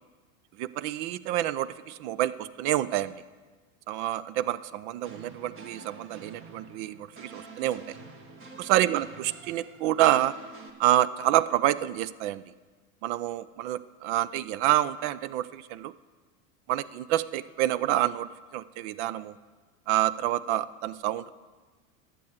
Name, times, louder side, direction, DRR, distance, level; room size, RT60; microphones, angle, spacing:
voice 1, 0.6-3.1 3.9-7.8 8.6-10.3 10.8-12.4 13.0-15.9 16.7-19.4 19.9-21.3, right 13 dB, 55° right, 18 dB, 0.6 m, -27 dB
sound 1, 5.0-10.7, right 3 dB, 30° right, 1.7 m, -48 dB
11.5 x 7.7 x 7.9 m, 1.4 s
hypercardioid pair, 95°, 40 cm